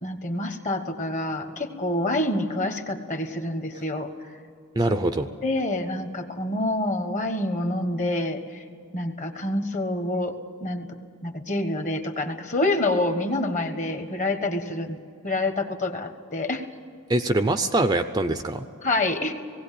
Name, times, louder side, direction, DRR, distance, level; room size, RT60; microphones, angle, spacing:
voice 1, 0.0-4.1 5.4-8.6 8.9-10.9 11.2-15.0 15.2-16.6 18.8-19.3, left 2 dB, 35° left, 7 dB, 1.4 m, -27 dB
voice 2, 4.8-5.3 17.1-18.6, right 2 dB, 20° right, 9 dB, 0.5 m, -23 dB
19.0 x 17.0 x 8.4 m, 2.5 s
head